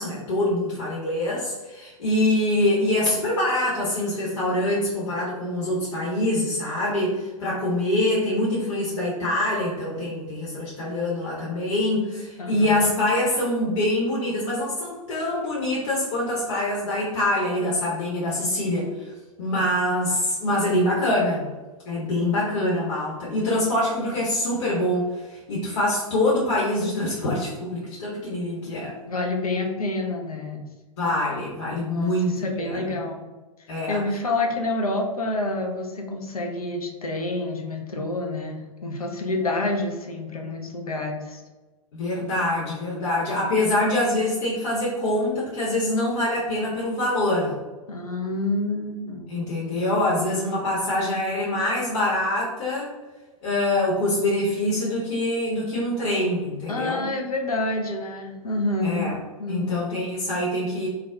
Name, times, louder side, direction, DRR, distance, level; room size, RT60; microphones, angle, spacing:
voice 1, 0.0-19.1 19.4-21.5 21.9-29.0 31.0-33.0 33.7-34.0 41.9-47.6 49.3-53.0 53.4-57.1 58.8-59.2 59.5-60.9, left 1 dB, 55° left, -6 dB, 0.7 m, -25 dB
voice 2, 12.4-13.0 19.5-19.6 22.2-22.4 29.1-30.6 31.9-33.3 33.9-41.4 47.9-49.4 49.6-49.9 56.7-59.1 59.4-59.8, left 2 dB, 85° left, 2 dB, 0.4 m, -28 dB
2.3 x 2.0 x 3.3 m, 1.2 s
figure-of-eight pair, 105°, 18 cm